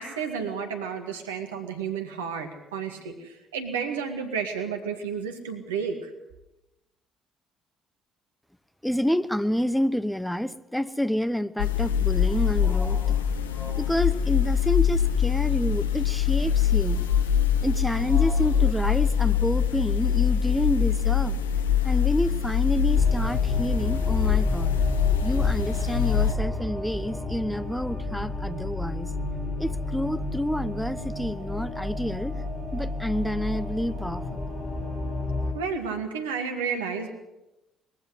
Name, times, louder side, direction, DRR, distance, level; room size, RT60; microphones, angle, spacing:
voice 1, 0.0-6.1 35.5-37.1, right 6 dB, 80° right, 5 dB, 2.1 m, -31 dB
voice 2, 8.8-17.2 17.6-21.4 21.8-24.8 25.2-29.1 29.6-32.4 32.7-34.4, equal, 5° left, 15 dB, 1.0 m, -29 dB
sound 1, 11.6-26.3, left 8 dB, 80° left, 0.8 m, -23 dB
sound 2, 22.9-35.5, left 2 dB, 20° left, 6.5 m, -32 dB
21.5 x 15.0 x 8.2 m, 0.96 s
figure-of-eight pair, 50°, 0 cm